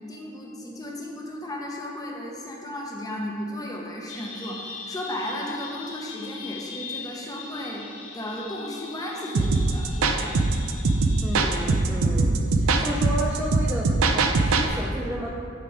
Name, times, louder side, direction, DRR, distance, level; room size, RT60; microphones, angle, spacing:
voice 1, 0.1-7.8 8.1-10.4, left 1 dB, 20° left, -2 dB, 0.9 m, -34 dB
sound 1, 4.1-11.8, left 4 dB, 65° left, 0.8 m, -41 dB
sound 2, 9.3-14.7, right 3 dB, 80° right, 0.5 m, -22 dB
voice 2, 11.2-15.3, right 1 dB, 5° right, -4 dB, 0.5 m, -32 dB
10.0 x 3.8 x 4.8 m, 2.5 s
head